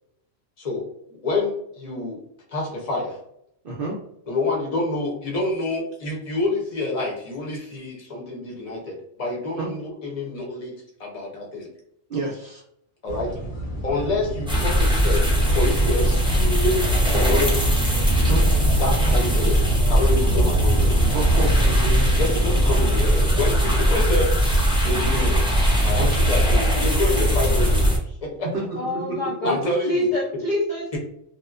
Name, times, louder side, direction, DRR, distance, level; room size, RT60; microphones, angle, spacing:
voice 1, 1.2-2.2 2.5-3.2 4.3-10.7 11.0-11.7 13.0-13.3 13.8-17.6 18.8-19.6 19.9-20.9 22.2-24.3 24.8-25.4 25.8-28.5 29.4-30.1, left 2 dB, 35° left, -1 dB, 0.7 m, -27 dB
voice 2, 3.6-4.0 9.6-9.7 12.1-12.6 18.2-18.5 20.4-20.5 21.1-22.2 26.0-26.1 28.5-28.6 28.9-29.0 29.6-29.7, right 3 dB, 60° right, -3 dB, 0.6 m, -29 dB
sound 1, 13.1-23.9, right 2 dB, 90° left, 1.2 m, -27 dB
sound 2, 14.5-28.0, equal, 10° right, 0.3 m, -20 dB
voice 3, 28.8-29.6 29.8-31.0, left 1 dB, 70° left, -4 dB, 0.4 m, -25 dB
2.8 x 2.1 x 2.4 m, 0.72 s
omnidirectional pair, 1.3 m